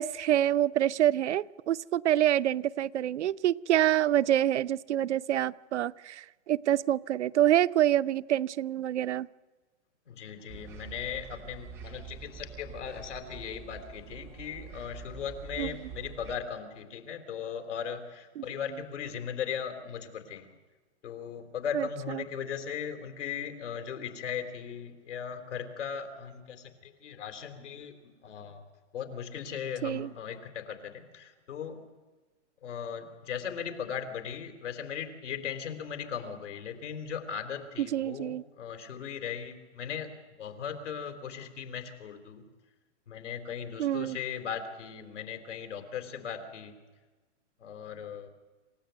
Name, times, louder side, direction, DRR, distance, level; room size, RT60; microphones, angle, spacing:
voice 1, 0.0-9.3 15.6-15.7 18.4-18.5 21.7-22.2 29.8-30.1 37.8-38.4 43.8-44.2, right 12 dB, 70° right, 16 dB, 0.7 m, -27 dB
voice 2, 10.1-20.5 21.0-28.0 28.2-28.6 28.9-31.8 32.6-40.1 40.4-42.4 43.1-46.7 47.6-48.3, left 7 dB, 75° left, 7 dB, 3.8 m, -38 dB
sound 1, 10.5-16.4, right 7 dB, 5° right, 0.6 m, -46 dB
27.0 x 16.0 x 9.3 m, 1.3 s
hypercardioid pair, 175°, 36 cm